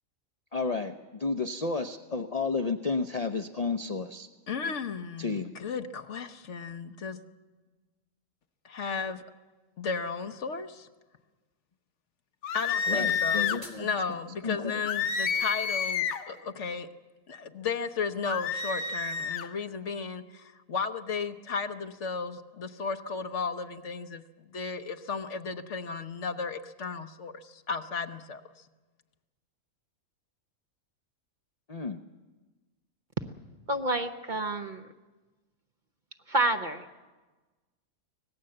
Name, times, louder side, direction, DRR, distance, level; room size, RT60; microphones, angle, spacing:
voice 1, 0.5-4.3 5.2-5.5 12.9-13.9 14.4-14.7 31.7-32.0, left 4 dB, 35° left, 8 dB, 0.7 m, -31 dB
voice 2, 4.5-7.2 8.6-9.2 9.8-10.9 12.5-13.5 13.8-16.9 17.3-24.2 24.5-28.4, left 5 dB, 60° left, 8 dB, 1.3 m, -34 dB
sound 1, 12.4-13.6 14.9-16.3 18.2-19.5, left 6 dB, 80° left, 1.4 m, -29 dB
sound 2, 13.1-14.2, right 1 dB, 20° right, 3.3 m, -51 dB
voice 3, 33.7-34.9 36.3-36.8, right 2 dB, 40° right, 7 dB, 0.9 m, -28 dB
25.0 x 18.5 x 7.8 m, 1.2 s
omnidirectional pair, 1.4 m